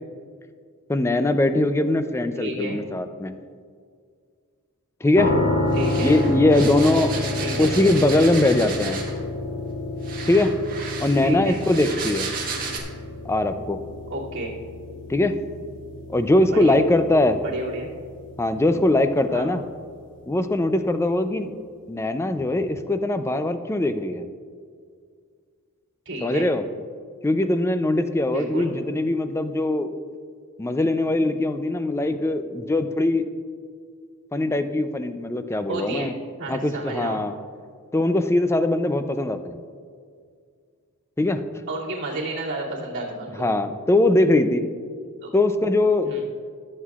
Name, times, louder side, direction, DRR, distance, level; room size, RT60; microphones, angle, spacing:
voice 1, 0.9-3.3 5.0-5.3 6.0-7.1 7.6-9.0 10.3-10.5 11.0-12.3 13.2-13.8 15.1-15.3 16.1-17.4 18.4-19.6 20.3-21.5 21.9-24.3 26.2-26.6 27.2-29.9 30.6-33.3 34.3-36.1 36.5-37.3 37.9-39.6 41.2-41.4 43.4-44.6 45.3-46.2, left 2 dB, 10° left, 9 dB, 0.4 m, -21 dB
voice 2, 2.4-2.8 5.7-6.2 7.4-7.7 11.2-11.6 14.1-14.5 16.5-16.8 17.4-17.9 19.3-19.5 26.0-26.4 28.3-28.7 35.7-36.1 36.4-37.2 41.7-43.5 45.2-45.3 46.0-46.2, right 2 dB, 55° right, -6 dB, 2.7 m, -31 dB
sound 1, 5.2-20.0, left 2 dB, 55° left, 1.0 m, -30 dB
sound 2, 5.7-9.2 10.0-12.8, right 5 dB, 40° right, 1.7 m, -33 dB
19.5 x 7.6 x 2.4 m, 2.1 s
head